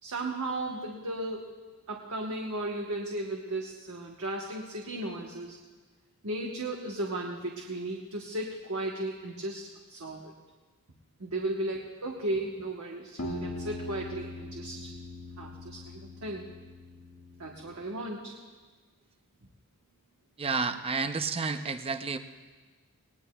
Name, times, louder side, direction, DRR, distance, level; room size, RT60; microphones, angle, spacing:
voice 1, 0.0-1.5 1.9-5.6 6.2-10.3 11.2-14.9 15.4-16.5 17.4-18.4, right 1 dB, 70° right, 0 dB, 1.1 m, -35 dB
sound 1, 13.2-17.9, left 1 dB, 85° left, 1.6 m, -41 dB
voice 2, 20.4-22.2, right 4 dB, 25° right, 9 dB, 0.6 m, -30 dB
19.5 x 19.0 x 2.3 m, 1.4 s
head